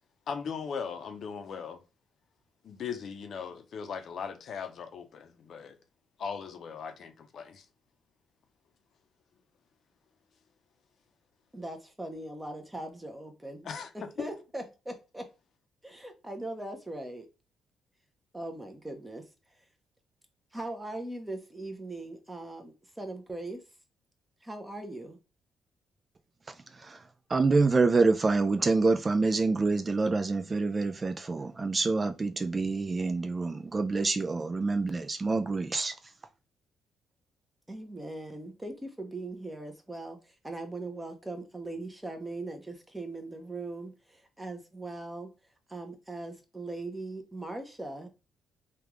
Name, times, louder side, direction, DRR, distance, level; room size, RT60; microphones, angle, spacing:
voice 1, 0.3-1.8 2.6-5.8 6.2-7.7 13.6-13.9 14.2-14.3, left 6 dB, 60° left, 0.6 m, -38 dB
voice 2, 11.5-13.7 13.9-15.2 15.8-17.3 18.3-19.6 20.5-23.6 24.4-25.2 37.7-45.3 45.7-48.1, right 2 dB, 10° right, 0.8 m, -40 dB
voice 3, 26.7-27.0 27.3-35.9, right 3 dB, 30° right, 0.3 m, -27 dB
3.4 x 2.4 x 3.0 m
cardioid pair, 90°, 0 cm